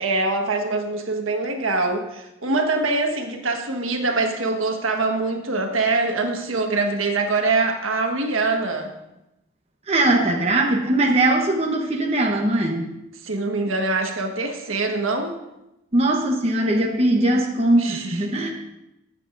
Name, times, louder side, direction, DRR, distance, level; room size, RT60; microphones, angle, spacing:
voice 1, 0.0-8.9 13.2-15.4 17.8-18.2, right 3 dB, 75° right, 3 dB, 1.4 m, -24 dB
voice 2, 9.9-12.9 15.9-18.5, right 1 dB, 30° right, 0 dB, 1.0 m, -20 dB
22.0 x 7.7 x 2.6 m, 0.90 s
head